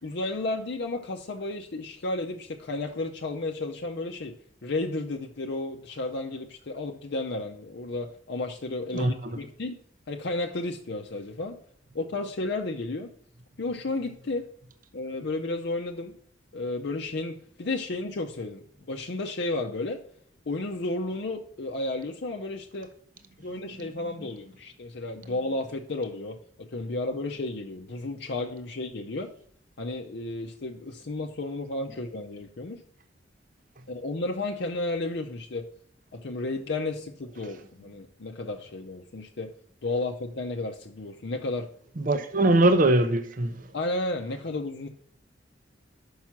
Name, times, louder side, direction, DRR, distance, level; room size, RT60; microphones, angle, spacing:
voice 1, 0.0-9.8 10.1-11.6 11.9-13.1 13.6-14.5 14.9-16.2 16.5-20.0 20.5-22.9 23.4-29.3 29.8-32.8 33.9-35.7 36.1-39.5 39.8-41.7 42.4-42.5 43.7-44.9, left 2 dB, 60° left, 0.6 m, -33 dB
voice 2, 8.9-9.4 42.0-43.7, right 2 dB, 45° right, 0.6 m, -22 dB
5.9 x 5.6 x 5.8 m
head